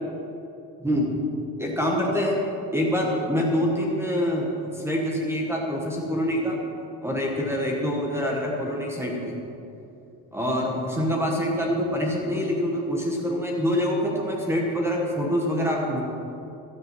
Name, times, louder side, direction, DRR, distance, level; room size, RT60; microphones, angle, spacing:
voice 1, 0.8-1.1 1.6-2.4 2.7-6.6 7.0-9.4 10.3-16.0, equal, 5° right, -1 dB, 1.2 m, -25 dB
12.5 x 8.5 x 7.5 m, 2.8 s
cardioid pair, 165°, 40 cm